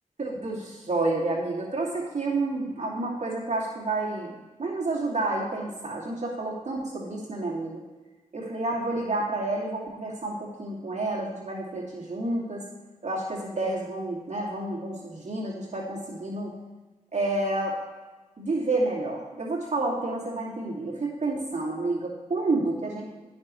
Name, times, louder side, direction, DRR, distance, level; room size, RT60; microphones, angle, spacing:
voice 1, 0.2-4.3 4.6-7.8 8.3-12.6 13.0-16.5 17.1-17.8 18.4-23.0, right 2 dB, 55° right, -4 dB, 2.5 m, -29 dB
18.5 x 6.2 x 3.2 m, 1.2 s
cardioid pair, 45°, 14 cm